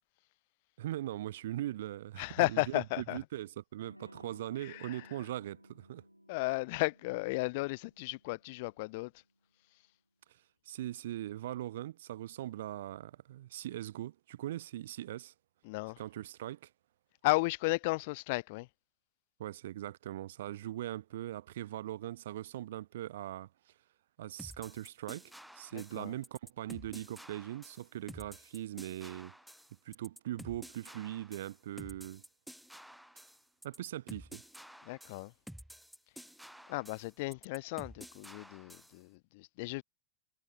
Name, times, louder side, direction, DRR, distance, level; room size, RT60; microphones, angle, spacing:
voice 1, 0.8-6.0 10.7-15.3 16.0-16.7 19.4-23.5 24.2-29.3 29.8-32.2 33.6-34.4, right 13 dB, 55° right, 0.7 m, -40 dB
voice 2, 2.2-3.2 4.6-5.0 6.3-9.1 15.7-16.0 17.2-18.7 25.7-26.1 34.9-35.3 36.7-39.8, left 24 dB, 50° left, 1.6 m, -34 dB
Electric guitar / Strum, 3.8-9.2, equal, 90° left, 4.4 m, -59 dB
sound 1, 24.4-39.0, equal, ahead, 1.9 m, -51 dB
figure-of-eight pair, 90°, 0 cm